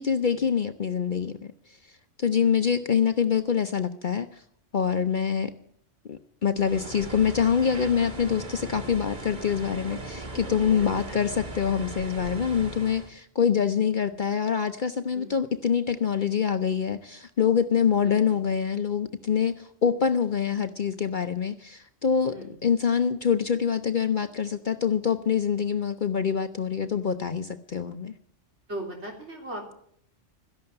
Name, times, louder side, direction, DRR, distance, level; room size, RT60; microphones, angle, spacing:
voice 1, 0.0-1.4 2.2-4.3 4.7-5.5 6.0-22.3 22.6-28.1, left 7 dB, 50° left, 9 dB, 0.7 m, -25 dB
voice 2, 2.3-2.9 10.8-11.2 15.1-15.3 18.0-18.4 22.3-22.5 28.7-29.7, right 1 dB, 65° right, 0 dB, 3.9 m, -40 dB
sound 1, 6.6-13.1, right 2 dB, 40° right, 1.4 m, -38 dB
13.5 x 11.0 x 7.8 m, 0.66 s
omnidirectional pair, 1.3 m